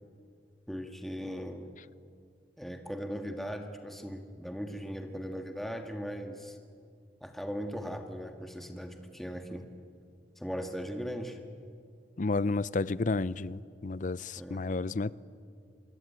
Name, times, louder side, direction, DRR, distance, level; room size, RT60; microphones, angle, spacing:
voice 1, 0.7-1.7 2.6-6.6 7.2-9.7 10.4-11.4 14.4-14.6, equal, ahead, 1.6 m, -38 dB
voice 2, 12.2-15.1, left 3 dB, 45° left, 0.6 m, -31 dB
25.5 x 23.0 x 9.3 m
head